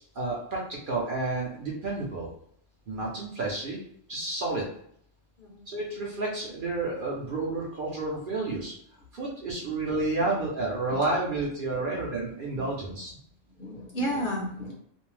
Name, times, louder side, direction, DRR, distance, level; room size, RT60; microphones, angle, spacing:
voice 1, 0.0-2.3 2.9-3.8 4.1-4.7 5.7-8.7 9.1-13.1, right 2 dB, 55° right, -3 dB, 0.7 m, -30 dB
voice 2, 2.9-3.2 5.4-5.7 9.6-9.8 10.2-10.4 10.9-11.1 11.7-12.1 12.5-12.9 13.4-14.7, equal, 50° left, -2 dB, 0.7 m, -35 dB
2.5 x 2.1 x 3.1 m, 0.67 s
omnidirectional pair, 1.3 m